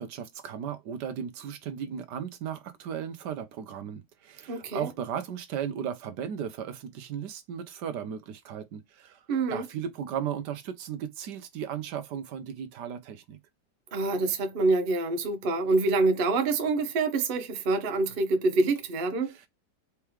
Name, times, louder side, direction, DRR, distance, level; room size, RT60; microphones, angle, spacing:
voice 1, 0.0-9.2 9.5-13.4 19.2-19.5, right 8 dB, 75° right, 1.3 m, -36 dB
voice 2, 4.5-4.9 9.3-9.6 13.9-19.3, right 3 dB, 40° right, 0.8 m, -26 dB
4.6 x 3.5 x 3.0 m
omnidirectional pair, 1.9 m